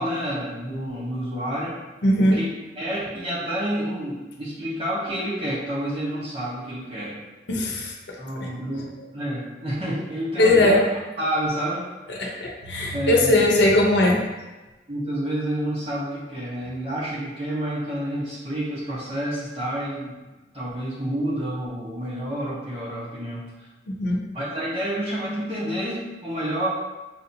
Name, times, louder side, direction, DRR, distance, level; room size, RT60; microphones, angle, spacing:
voice 1, 0.0-1.7 2.3-2.5 2.7-7.2 8.2-10.8 11.2-11.8 12.9-13.5 14.9-20.1 20.5-23.7 24.3-26.7, right 1 dB, 35° right, -8 dB, 1.0 m, -29 dB
voice 2, 2.0-2.4 7.5-7.9 8.4-8.5 10.4-10.8 12.2-14.2 24.0-24.2, left 1 dB, 85° left, -2 dB, 0.8 m, -19 dB
5.8 x 2.8 x 2.7 m, 1.1 s
head